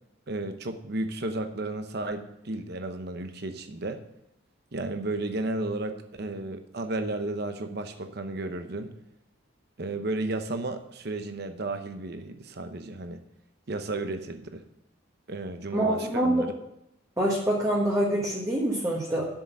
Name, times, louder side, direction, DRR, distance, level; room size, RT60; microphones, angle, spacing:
voice 1, 0.3-4.0 4.7-8.9 9.8-13.2 13.7-14.6 15.3-16.5, right 2 dB, 50° right, 8 dB, 0.8 m, -33 dB
voice 2, 15.7-16.5 17.2-19.3, right 1 dB, 15° right, -4 dB, 1.4 m, -25 dB
7.9 x 6.5 x 8.1 m, 0.85 s
head